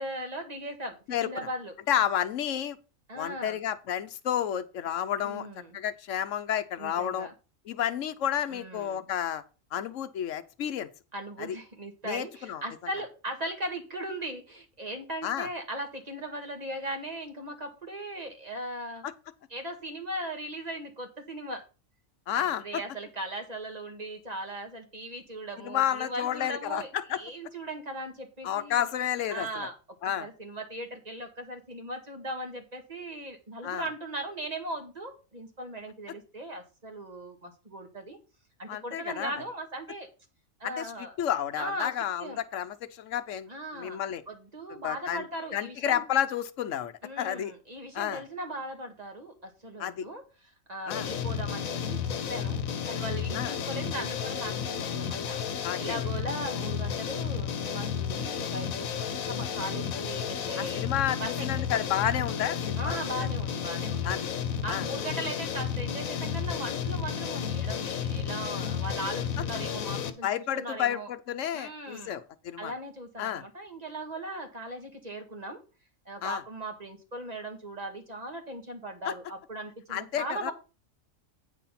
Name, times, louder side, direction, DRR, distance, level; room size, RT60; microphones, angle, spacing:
voice 1, 0.0-1.7 3.1-3.6 5.2-5.8 6.8-7.3 8.5-9.0 11.1-19.1 19.5-21.6 22.3-28.9 29.3-29.8 30.2-38.2 38.6-40.1 40.6-41.1 41.6-41.9 42.2-42.4 43.5-44.0 44.3-46.0 47.0-50.2 50.7-55.4 55.8-60.9 61.2-61.8 62.8-64.2 64.6-71.1 71.5-72.2 72.6-75.6 76.1-80.5, right 1 dB, 30° right, 1.9 m, -38 dB
voice 2, 1.1-1.5 1.9-2.8 3.2-5.5 5.7-7.3 7.7-9.4 9.7-10.9 11.4-11.6 12.0-12.6 15.2-15.5 19.0-19.1 22.3-22.8 25.6-27.2 28.4-29.7 30.0-30.3 33.6-33.8 38.7-39.3 40.6-43.5 43.7-44.2 44.8-45.3 45.5-47.5 47.9-48.2 49.8-50.1 50.9-51.1 53.3-53.5 55.6-56.1 60.6-63.3 64.0-64.3 64.7-64.9 70.2-72.7 73.2-73.4 76.2-76.4 79.0-79.1 79.9-80.5, left 10 dB, 70° left, 1.1 m, -31 dB
sound 1, 50.9-70.1, left 7 dB, 90° left, 1.3 m, -32 dB
9.1 x 4.2 x 5.7 m
omnidirectional pair, 1.4 m